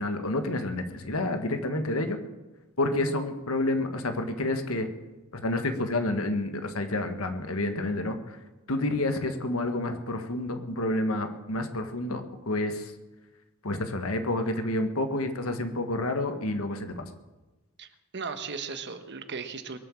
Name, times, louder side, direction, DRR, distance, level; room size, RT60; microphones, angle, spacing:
voice 1, 0.0-2.2 2.8-4.9 5.3-8.4 8.7-12.9 13.6-17.1, left 1 dB, 90° left, 7 dB, 1.6 m, -29 dB
voice 2, 17.8-19.8, right 5 dB, 55° right, 9 dB, 1.3 m, -37 dB
22.0 x 7.8 x 7.5 m, 1.1 s
head